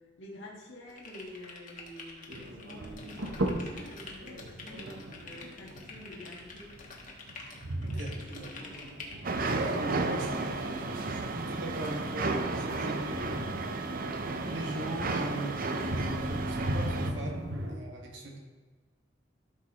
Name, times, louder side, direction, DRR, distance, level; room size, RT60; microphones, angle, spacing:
voice 1, 0.0-6.7 7.9-8.7, left 1 dB, 80° left, -4 dB, 1.6 m, -49 dB
sound 1, 0.9-9.2, left 3 dB, 45° left, 1.4 m, -47 dB
sound 2, 2.3-17.8, right 1 dB, 90° right, 1.0 m, -39 dB
voice 2, 7.8-8.5 9.5-13.5 14.5-18.4, right 1 dB, 75° right, 0 dB, 1.7 m, -39 dB
sound 3, 9.2-17.1, right 3 dB, 50° right, 0.7 m, -33 dB
13.0 x 6.2 x 3.0 m, 1.4 s
head